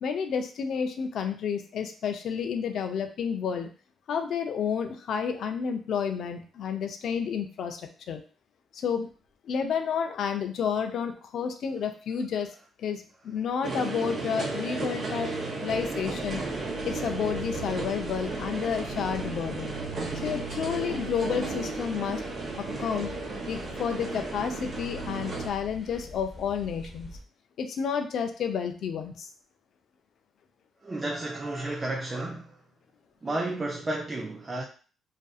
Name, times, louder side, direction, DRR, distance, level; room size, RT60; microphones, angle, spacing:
voice 1, 0.0-3.7 4.1-8.2 8.7-9.1 9.5-12.5 12.8-15.3 15.6-16.4 16.8-19.7 20.2-22.2 22.5-23.1 23.5-27.1 27.6-29.3, left 7 dB, 65° left, 0.3 m, -30 dB
sound 1, 13.6-25.5, right 3 dB, 45° right, 0.8 m, -34 dB
sound 2, 15.7-27.2, left 1 dB, 20° left, 0.9 m, -46 dB
voice 2, 30.8-32.6 33.2-34.6, right 2 dB, 25° right, 0.4 m, -32 dB
2.5 x 2.5 x 2.3 m
cardioid pair, 90°, 0 cm